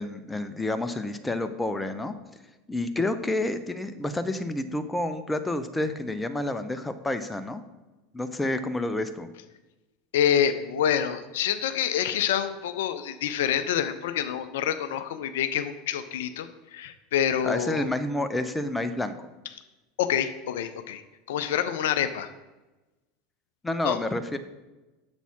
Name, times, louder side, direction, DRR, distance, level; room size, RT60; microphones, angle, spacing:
voice 1, 0.0-2.1 2.7-7.6 8.1-9.3 17.4-19.2 23.6-24.4, left 2 dB, 10° left, 11 dB, 0.5 m, -29 dB
voice 2, 10.1-17.9 20.0-21.0 21.3-22.3 23.8-24.0, left 9 dB, 65° left, 10 dB, 0.4 m, -27 dB
6.8 x 4.1 x 5.9 m, 1.1 s
figure-of-eight pair, 75°, 0 cm